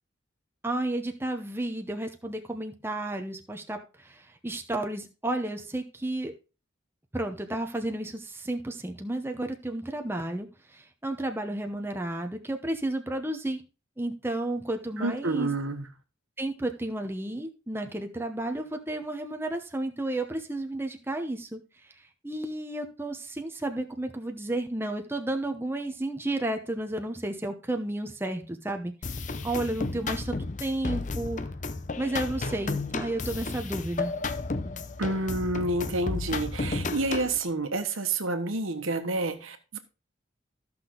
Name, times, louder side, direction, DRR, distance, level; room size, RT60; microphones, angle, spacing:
voice 1, 0.6-6.3 7.1-13.6 14.0-15.5 16.4-21.6 21.8-21.9 22.2-31.4 32.0-34.1, right 1 dB, 10° right, 0.8 m, -32 dB
voice 2, 15.0-15.9 35.0-39.8, right 2 dB, 80° right, 1.3 m, -29 dB
sound 1, 29.0-37.4, left 3 dB, 40° left, 0.6 m, -33 dB
13.5 x 6.0 x 3.8 m
head